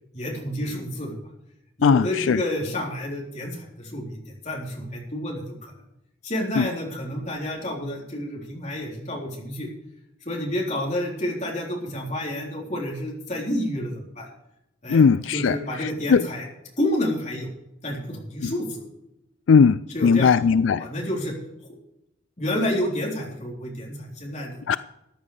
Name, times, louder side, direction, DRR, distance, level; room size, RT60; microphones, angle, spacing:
voice 1, 0.1-1.2 1.8-4.2 4.4-5.7 6.2-9.7 10.3-14.3 14.8-15.0 15.3-16.5 16.8-17.5 17.8-18.8 19.9-20.3 20.6-21.3 22.4-24.6, left 1 dB, 35° left, 3.8 m, -29 dB
voice 2, 1.8-2.4 6.6-6.7 14.9-15.6 16.1-16.2 18.4-18.5 19.5-20.8 24.7-24.8, left 5 dB, 85° left, 0.4 m, -18 dB
14.5 x 10.0 x 4.9 m
head